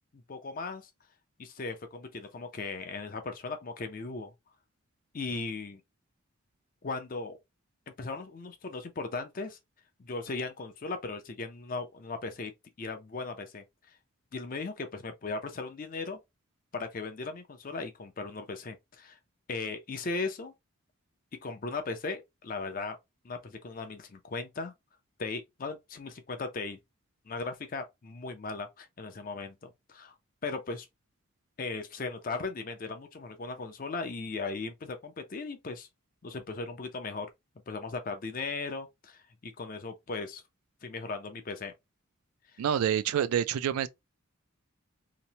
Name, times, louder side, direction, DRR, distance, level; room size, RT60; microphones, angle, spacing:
voice 1, 0.1-0.9 1.4-4.3 5.1-5.8 6.8-7.4 8.0-9.6 10.0-12.5 12.8-13.6 14.3-16.2 16.7-19.2 19.5-20.5 21.4-23.0 23.2-24.7 25.2-26.8 27.3-30.1 30.4-30.9 31.6-35.9 36.2-37.3 37.7-40.4 40.8-41.7, left 3 dB, 40° left, 0.4 m, -37 dB
voice 2, 42.6-43.9, right 9 dB, 90° right, 0.3 m, -27 dB
2.9 x 2.0 x 2.7 m
head